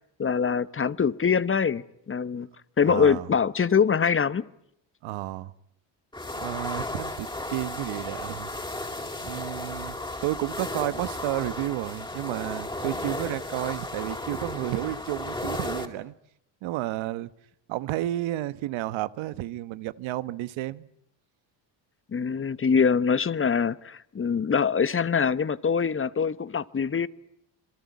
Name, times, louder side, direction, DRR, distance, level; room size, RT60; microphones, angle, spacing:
voice 1, 0.2-2.5 2.8-4.4 22.1-27.1, left 6 dB, 25° left, 1.0 m, -24 dB
voice 2, 2.8-3.3 5.0-5.5 6.4-8.5 9.2-10.0 10.2-16.1 16.6-17.3 17.7-20.9, right 15 dB, 85° right, 1.3 m, -31 dB
sound 1, 6.1-15.9, left 2 dB, 10° left, 4.1 m, -34 dB
27.5 x 22.5 x 9.5 m
cardioid pair, 105°, 46 cm